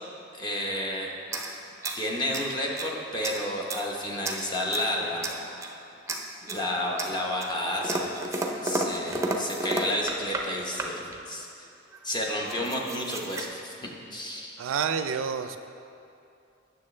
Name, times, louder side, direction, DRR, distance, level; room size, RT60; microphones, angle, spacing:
voice 1, 0.3-1.1 1.9-5.3 6.4-8.2 8.5-11.7 12.0-14.6, left 1 dB, 25° left, -2 dB, 0.9 m, -31 dB
sound 1, 1.2-2.9 3.2-3.9 4.2-4.9 5.2-5.8 6.1-6.7 7.0-10.5 10.8-11.2 11.9-12.0 12.2-13.4, right 2 dB, 15° right, 0.5 m, -33 dB
voice 2, 14.6-15.6, right 6 dB, 85° right, 9 dB, 0.4 m, -28 dB
9.4 x 6.5 x 3.2 m, 2.6 s
head